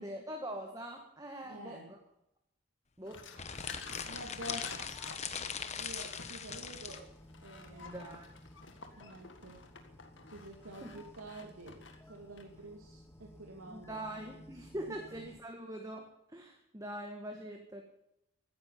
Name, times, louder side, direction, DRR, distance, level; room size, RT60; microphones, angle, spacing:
voice 1, 0.0-2.0 3.0-3.3 7.8-8.3 10.8-11.0 13.6-17.8, right 1 dB, 15° right, 3 dB, 1.5 m, -43 dB
voice 2, 1.4-1.9 4.1-5.0 5.8-7.1 7.4-8.2 9.0-9.7 10.3-14.3 14.9-15.0, right 1 dB, 85° right, -1 dB, 2.8 m, -49 dB
sound 1, 3.1-12.6, left 4 dB, 60° left, 1.9 m, -51 dB
sound 2, 3.3-7.0, left 7 dB, 30° left, 1.1 m, -40 dB
sound 3, 3.4-15.5, left 1 dB, 10° left, 1.1 m, -56 dB
14.5 x 10.0 x 9.4 m, 0.82 s
head